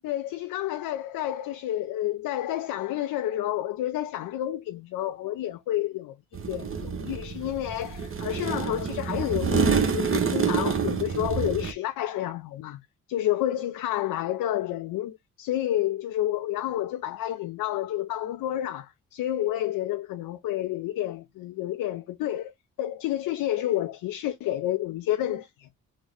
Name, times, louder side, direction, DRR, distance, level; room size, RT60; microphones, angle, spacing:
voice 1, 0.0-6.2 6.5-12.8 13.1-22.5 22.8-25.7, left 13 dB, 65° left, 0.5 m, -30 dB
sound 1, 6.3-11.7, right 6 dB, 35° right, 0.8 m, -27 dB
3.7 x 2.0 x 3.2 m
hypercardioid pair, 45°, 37 cm